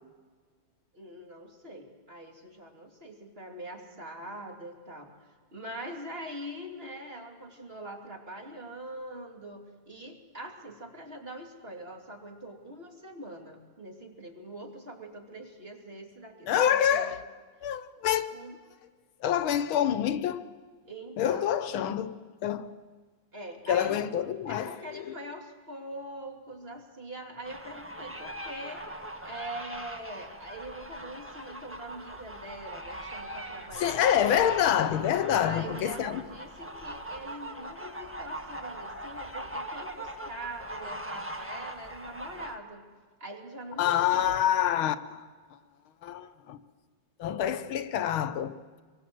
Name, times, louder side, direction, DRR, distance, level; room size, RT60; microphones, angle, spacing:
voice 1, 0.9-17.1 18.3-18.6 20.8-21.5 23.3-24.0 24.5-34.2 35.3-42.8 43.2-44.4, right 1 dB, 30° right, 3.1 m, -43 dB
voice 2, 16.5-17.2 17.6-18.3 19.2-20.5 21.2-22.2 22.4-22.7 23.7-25.1 33.8-36.2 43.8-45.3 46.0-46.6 47.2-48.8, left 10 dB, 80° left, 1.7 m, -27 dB
sound 1, 27.4-42.5, right 1 dB, 5° right, 1.3 m, -40 dB
26.5 x 23.5 x 7.8 m
omnidirectional pair, 2.2 m